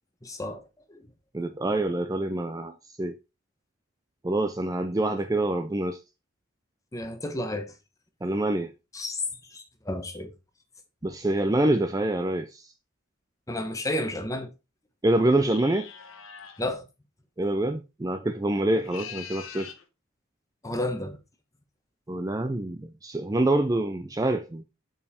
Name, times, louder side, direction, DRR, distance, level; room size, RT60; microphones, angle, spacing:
voice 1, 0.2-0.6 0.9-1.0 6.9-7.7 8.9-9.2 9.5-10.3 13.5-14.5 16.6-16.8 20.6-21.2, left 1 dB, 15° left, 1.0 m, -31 dB
voice 2, 1.3-3.2 4.2-6.0 8.2-8.7 11.0-12.7 15.0-15.9 17.4-19.7 22.1-24.6, right 1 dB, 15° right, 0.4 m, -26 dB
sound 1, 15.4-16.6 18.7-19.8, left 8 dB, 75° left, 1.1 m, -42 dB
7.1 x 5.3 x 4.1 m
head